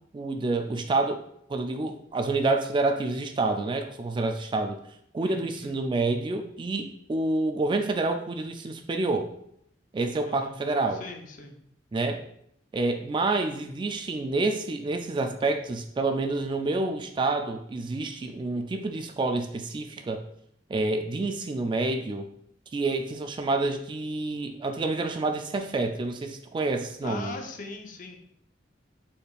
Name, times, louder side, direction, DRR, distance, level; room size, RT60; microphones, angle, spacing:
voice 1, 0.1-1.2 1.5-4.8 5.1-9.3 9.9-11.0 11.9-12.2 12.7-20.2 20.7-22.3 22.7-27.4, right 3 dB, 25° right, 6 dB, 0.3 m, -28 dB
voice 2, 5.2-5.8 10.3-10.6 10.9-11.6 27.0-28.2, left 3 dB, 45° left, 4 dB, 0.6 m, -40 dB
5.0 x 4.2 x 2.4 m, 0.72 s
head